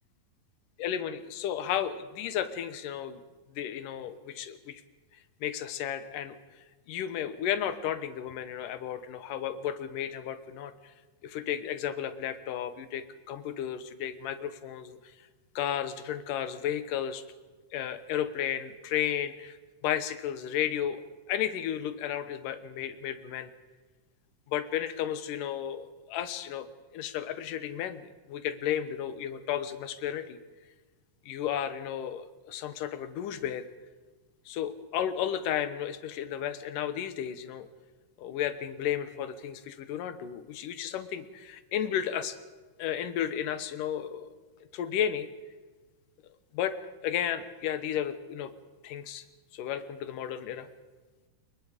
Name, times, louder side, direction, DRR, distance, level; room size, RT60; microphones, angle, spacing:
voice 1, 0.8-3.2 3.5-4.8 5.4-10.9 11.2-15.1 15.6-17.2 17.7-19.6 19.8-21.0 21.3-23.5 24.5-26.7 26.9-30.4 31.3-33.6 34.5-37.7 38.2-42.4 42.8-44.3 44.7-45.3 46.5-46.8 47.0-48.5 48.8-49.2 49.5-50.7, left 10 dB, 75° left, 12 dB, 2.7 m, -33 dB
27.5 x 22.5 x 5.1 m, 1.3 s
omnidirectional pair, 3.9 m